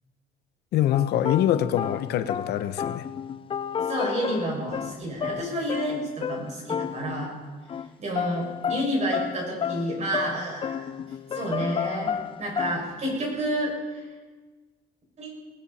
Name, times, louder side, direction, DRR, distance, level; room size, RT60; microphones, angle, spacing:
voice 1, 0.7-3.1, left 11 dB, 75° left, 10 dB, 0.9 m, -24 dB
sound 1, 0.9-7.4 7.7-7.9 8.1-12.8, left 8 dB, 30° left, 0.4 m, -32 dB
voice 2, 3.9-7.4 8.0-11.0 11.3-14.1 15.2-15.3, right 1 dB, 45° right, -1 dB, 6.4 m, -30 dB
19.0 x 17.0 x 4.3 m, 1.3 s
cardioid pair, 110°, 17 cm